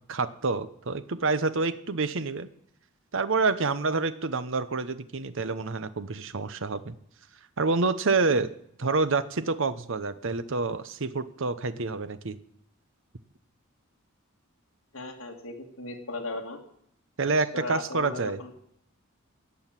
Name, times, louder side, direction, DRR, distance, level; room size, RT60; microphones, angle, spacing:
voice 1, 0.1-2.5 3.1-6.9 7.6-8.5 8.8-12.4 17.2-18.4, right 3 dB, 65° right, 13 dB, 0.9 m, -27 dB
voice 2, 14.9-16.6 17.5-18.5, left 2 dB, 75° left, -1 dB, 2.2 m, -37 dB
17.5 x 6.4 x 9.0 m, 0.70 s
head